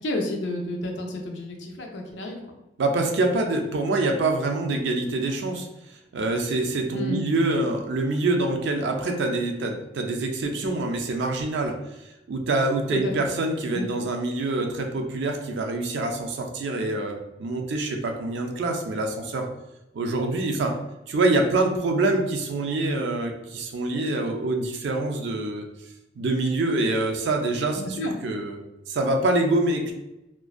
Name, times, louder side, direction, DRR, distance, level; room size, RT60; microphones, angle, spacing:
voice 1, 0.0-2.4 6.9-7.2 12.9-13.1 13.7-13.9 27.7-28.1, left 1 dB, 70° left, 1 dB, 0.5 m, -30 dB
voice 2, 2.8-5.7 6.1-11.8 12.3-19.5 19.9-20.8 21.1-25.6 26.2-28.6 28.9-29.9, right 2 dB, 65° right, 3 dB, 0.4 m, -25 dB
2.5 x 2.1 x 2.3 m, 0.95 s
head